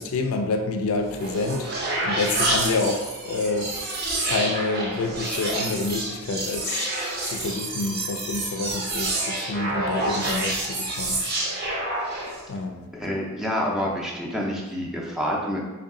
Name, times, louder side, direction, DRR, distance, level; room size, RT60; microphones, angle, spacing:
voice 1, 0.0-1.7 2.0-3.7 4.2-6.9 7.2-11.2 12.5-12.9, left 3 dB, 70° left, 5 dB, 0.4 m, -28 dB
sound 1, 1.0-12.5, right 2 dB, 50° right, 0.7 m, -28 dB
voice 2, 12.9-15.7, equal, ahead, -3 dB, 0.5 m, -28 dB
3.7 x 2.3 x 3.6 m, 1.2 s
head